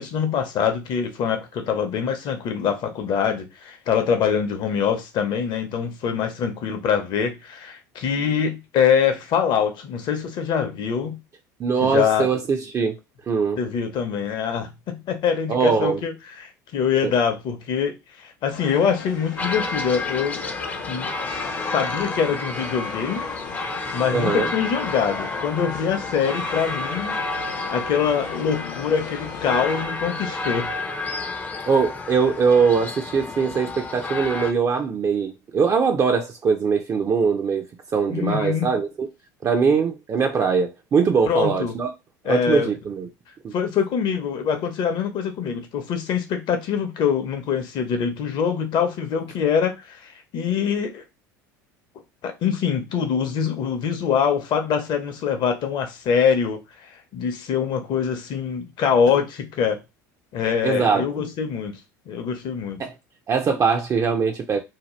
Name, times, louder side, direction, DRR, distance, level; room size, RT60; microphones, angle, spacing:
voice 1, 0.0-11.2 11.8-12.3 13.6-16.1 16.4-20.4 20.9-21.4 21.7-23.3 23.9-30.7 38.1-38.7 41.3-41.7 42.2-42.7 43.5-51.0 52.2-56.6 57.1-59.8 60.3-61.8 62.1-62.8, left 7 dB, 50° left, 0.8 m, -24 dB
voice 2, 11.6-13.0 13.3-13.6 15.5-16.0 17.0-17.1 24.1-24.5 31.7-37.7 37.9-39.1 39.4-41.9 42.2-43.1 43.4-43.5 60.6-61.3 62.8-62.9 63.3-64.6, right 5 dB, 35° right, 0.5 m, -21 dB
sound 1, 18.5-29.9, left 6 dB, 85° left, 0.5 m, -38 dB
sound 2, 19.4-34.5, left 3 dB, 15° left, 0.5 m, -30 dB
2.8 x 2.2 x 3.1 m
hypercardioid pair, 75°, 10 cm